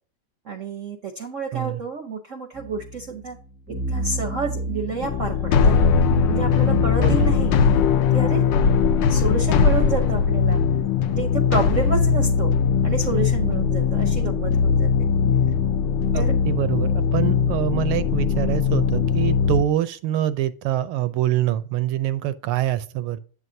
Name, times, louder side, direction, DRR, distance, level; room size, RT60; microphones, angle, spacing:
voice 1, 0.4-3.4 3.7-5.8 6.3-7.6 8.1-8.4 9.1-10.6 11.1-12.5 12.8-14.9 16.1-16.4, right 4 dB, 65° right, 0.8 m, -29 dB
sound 1, 2.5-8.3, right 1 dB, 15° right, 0.3 m, -31 dB
sound 2, 5.0-19.6, left 6 dB, 70° left, 1.1 m, -20 dB
voice 2, 7.0-7.3 16.1-23.2, right 12 dB, 85° right, 1.6 m, -25 dB
8.2 x 7.8 x 2.7 m
omnidirectional pair, 2.3 m